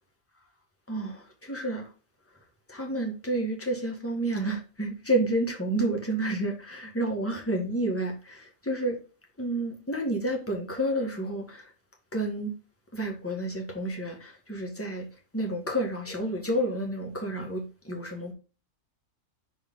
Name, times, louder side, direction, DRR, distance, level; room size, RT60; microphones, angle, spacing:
voice 1, 0.9-1.9 2.7-9.0 9.4-11.6 12.1-12.5 12.9-15.0 15.3-18.3, right 1 dB, 10° left, 1.6 m, -30 dB
6.3 x 4.8 x 3.6 m
omnidirectional pair, 1.4 m